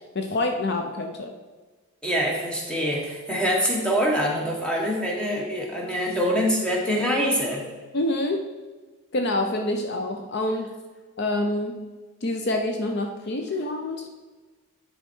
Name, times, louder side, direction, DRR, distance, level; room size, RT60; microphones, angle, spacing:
voice 1, 0.1-1.3 7.9-8.4 9.1-10.7 11.2-11.7 12.2-14.1, left 1 dB, 50° left, 4 dB, 0.5 m, -26 dB
voice 2, 2.0-7.6, equal, 5° left, -2 dB, 1.2 m, -24 dB
10.0 x 4.3 x 4.5 m, 1.3 s
head